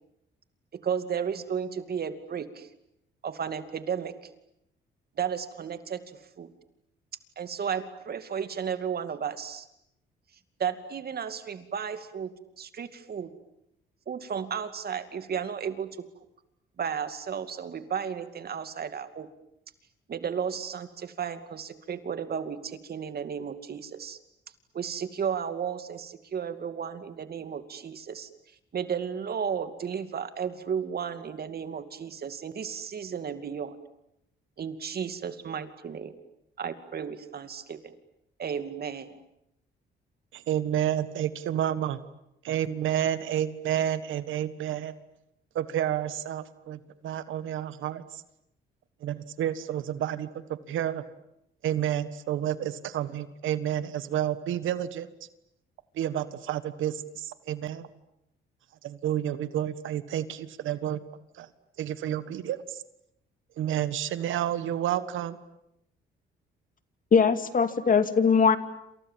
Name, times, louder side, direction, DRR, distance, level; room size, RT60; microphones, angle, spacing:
voice 1, 0.8-2.7 3.2-4.1 5.2-6.0 6.4-6.5 7.4-9.7 10.6-12.3 12.6-13.3 14.1-15.9 16.8-19.3 20.1-24.2 24.7-28.3 28.7-33.8 34.6-36.1 36.6-37.9 38.4-39.1, right 7 dB, 50° right, 10 dB, 2.5 m, -33 dB
voice 2, 40.3-42.0 42.4-44.9 45.5-48.0 49.0-51.0 51.6-55.1 56.0-57.8 58.8-61.0 61.4-61.5 61.8-62.6 63.6-65.4, right 11 dB, 80° right, 14 dB, 1.5 m, -30 dB
voice 3, 67.1-68.6, left 5 dB, 45° left, 10 dB, 2.5 m, -21 dB
28.0 x 28.0 x 7.5 m, 0.80 s
cardioid pair, 90°, 20 cm